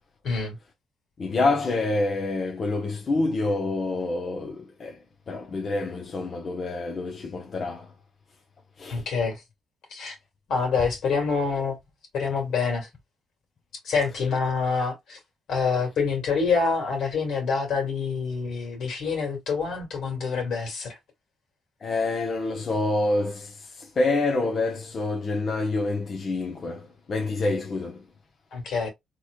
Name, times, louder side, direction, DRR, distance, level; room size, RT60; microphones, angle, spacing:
voice 1, 0.2-0.6 8.9-9.4 9.9-10.2 10.5-11.8 12.1-12.9 13.8-15.2 15.5-21.0 28.5-28.9, left 5 dB, 75° left, 2.1 m, -26 dB
voice 2, 1.2-7.9 8.8-9.0 21.8-28.0, left 2 dB, 45° left, 0.9 m, -27 dB
4.0 x 3.1 x 2.3 m
cardioid pair, 90°, 0 cm